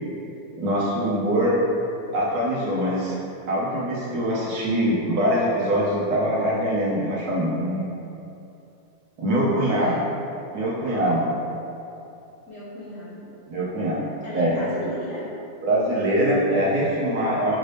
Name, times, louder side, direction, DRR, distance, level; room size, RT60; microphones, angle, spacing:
voice 1, 0.6-1.6 2.1-3.1 3.5-7.9 9.2-10.0 10.5-11.2 13.5-14.0 14.3-14.7 15.6-17.6, equal, 65° right, -6 dB, 1.1 m, -23 dB
voice 2, 9.6-10.0 12.5-13.4 14.2-15.3, equal, 50° left, -9 dB, 1.2 m, -35 dB
6.1 x 2.6 x 3.2 m, 2.7 s
omnidirectional pair, 2.0 m